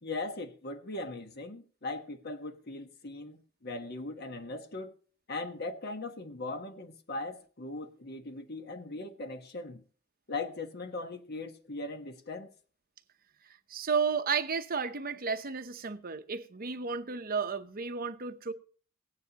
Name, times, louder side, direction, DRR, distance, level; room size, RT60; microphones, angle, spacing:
voice 1, 0.0-4.9 5.3-9.8 10.3-12.5, left 2 dB, 50° left, 1.2 m, -39 dB
voice 2, 13.7-18.5, right 5 dB, 45° right, 0.8 m, -32 dB
17.0 x 9.7 x 2.9 m
head